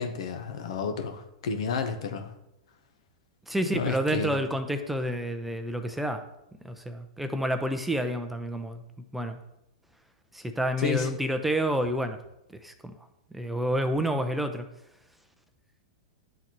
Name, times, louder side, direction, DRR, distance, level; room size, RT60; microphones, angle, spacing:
voice 1, 0.0-2.3 3.6-4.3 10.8-11.1, left 5 dB, 70° left, 7 dB, 0.8 m, -31 dB
voice 2, 3.5-6.2 6.6-8.8 9.1-9.4 10.3-12.2 12.6-12.9 13.3-14.7, right 1 dB, 5° right, 7 dB, 0.5 m, -29 dB
10.5 x 4.0 x 3.0 m, 0.85 s
hypercardioid pair, 110°, 3 cm